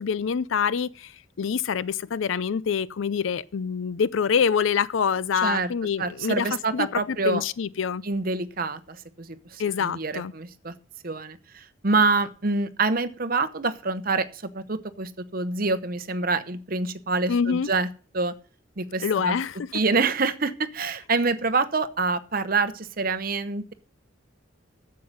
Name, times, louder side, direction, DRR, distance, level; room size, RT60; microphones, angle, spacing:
voice 1, 0.0-8.0 9.6-10.3 17.3-17.7 19.0-19.6, left 6 dB, 75° left, 0.4 m, -26 dB
voice 2, 6.0-7.4 8.0-10.7 11.0-17.9 18.1-18.3 18.8-19.3 19.7-23.7, right 3 dB, 45° right, 0.9 m, -26 dB
9.4 x 7.6 x 7.7 m
head